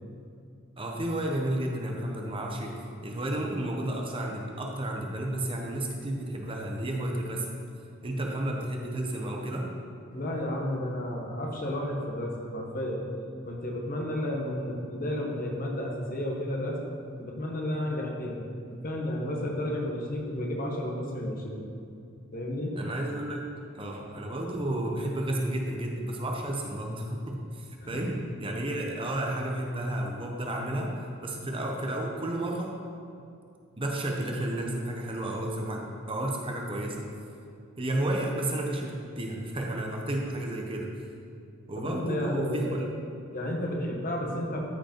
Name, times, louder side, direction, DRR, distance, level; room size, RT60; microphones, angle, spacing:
voice 1, 0.8-2.8 3.0-7.5 8.0-9.7 22.8-23.4 23.7-30.9 31.2-32.7 33.8-37.1 37.8-40.9 41.7-42.8 44.3-44.4, right 1 dB, 25° right, 0 dB, 0.9 m, -32 dB
voice 2, 10.1-13.0 13.4-16.8 17.2-18.4 18.7-21.7 22.3-22.7 27.8-28.0 41.7-42.8 43.3-44.6, left 1 dB, 45° left, -1 dB, 1.4 m, -32 dB
13.5 x 5.1 x 4.5 m, 2.4 s
head